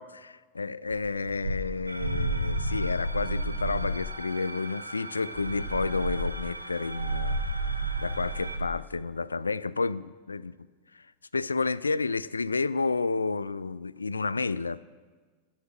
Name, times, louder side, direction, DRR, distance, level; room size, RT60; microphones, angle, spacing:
voice 1, 0.0-7.4 8.0-10.6 10.9-11.0 11.3-14.8, left 4 dB, 75° left, 0.3 m, -30 dB
sound 1, 0.9-4.1 5.3-8.8, right 1 dB, 65° right, 1.5 m, -31 dB
sound 2, 1.9-8.6, right 1 dB, 90° right, 0.8 m, -41 dB
12.5 x 8.1 x 7.4 m
figure-of-eight pair, 90°, 0 cm